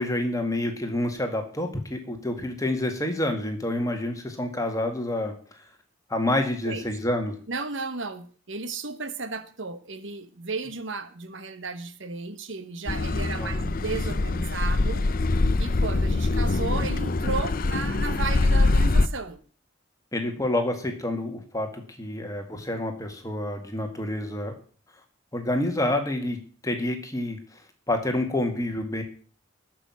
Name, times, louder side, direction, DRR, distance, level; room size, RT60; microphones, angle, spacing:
voice 1, 0.0-5.6 6.1-7.4 13.4-13.7 20.1-24.5 25.3-26.4 26.6-27.6 27.9-29.0, left 1 dB, 15° left, 2.0 m, -28 dB
voice 2, 7.5-15.1 15.6-19.4, right 4 dB, 65° right, 1.2 m, -34 dB
Car passing by / Accelerating revving vroom, 12.9-19.1, left 2 dB, 45° left, 0.6 m, -23 dB
13.0 x 6.1 x 9.0 m
head